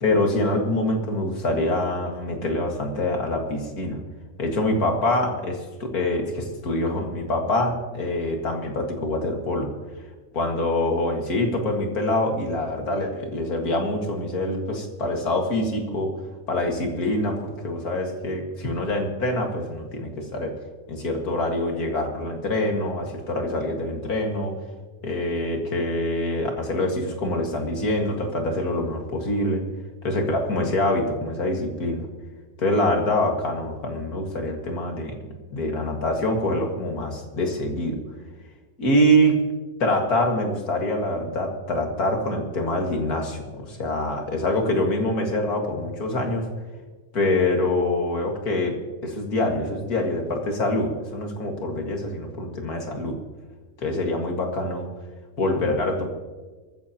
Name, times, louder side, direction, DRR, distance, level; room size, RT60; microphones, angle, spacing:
voice 1, 0.0-4.0 4.4-9.7 10.3-16.1 16.5-20.5 20.9-24.5 25.0-29.6 30.0-32.1 32.6-35.1 35.5-38.0 38.8-39.3 39.8-46.5 47.1-48.7 49.0-53.2 53.8-54.9 55.4-56.1, left 1 dB, 80° left, 2 dB, 2.5 m, -25 dB
22.5 x 14.5 x 3.0 m, 1.3 s
omnidirectional pair, 1.6 m